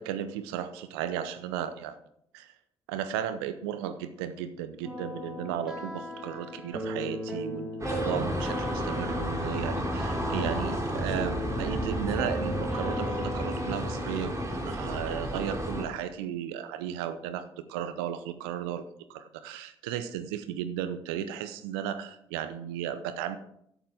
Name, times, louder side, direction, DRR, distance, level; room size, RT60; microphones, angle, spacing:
voice 1, 0.0-2.0 2.3-2.5 2.9-14.4 14.6-18.8 19.1-23.4, right 10 dB, 75° right, 12 dB, 0.7 m, -35 dB
sound 1, 4.8-14.0, equal, 5° right, 3.8 m, -37 dB
sound 2, 7.8-15.8, equal, 25° right, 3.0 m, -32 dB
13.0 x 11.0 x 3.5 m, 0.72 s
figure-of-eight pair, 40°, 13 cm